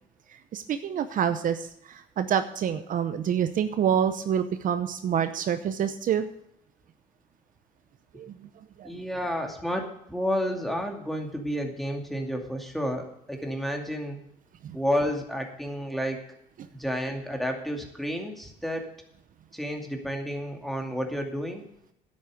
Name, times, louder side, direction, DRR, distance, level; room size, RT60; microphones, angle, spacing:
voice 1, 0.3-6.3 8.1-8.9 14.6-14.8 16.6-16.7, right 8 dB, 55° right, 10 dB, 0.8 m, -27 dB
voice 2, 8.8-14.2 14.7-16.2 16.7-18.9 19.5-21.7, equal, ahead, 3 dB, 2.4 m, -31 dB
10.5 x 8.6 x 6.5 m, 0.74 s
cardioid pair, 110°, 17 cm